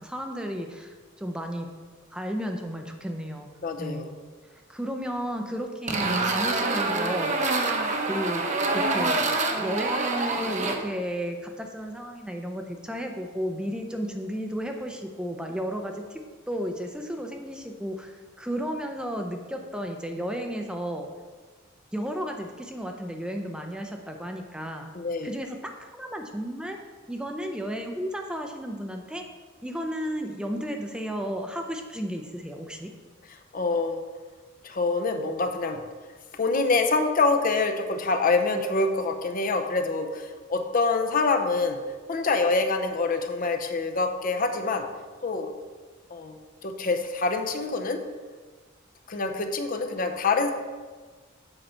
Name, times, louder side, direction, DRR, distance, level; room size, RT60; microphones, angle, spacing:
voice 1, 0.0-1.7 2.1-3.5 3.8-4.1 4.5-9.3 9.5-21.1 21.9-24.9 25.2-26.8 27.1-29.3 29.6-32.9, equal, 5° right, 3 dB, 0.5 m, -33 dB
voice 2, 3.6-4.1 24.9-25.3 33.5-34.0 34.6-35.8 36.3-41.8 42.1-44.9 45.2-45.5 46.1-48.0 49.1-50.5, left 3 dB, 45° left, 5 dB, 0.6 m, -26 dB
sound 1, 5.9-10.8, right 3 dB, 40° right, 0.8 m, -26 dB
7.8 x 5.5 x 4.4 m, 1.4 s
head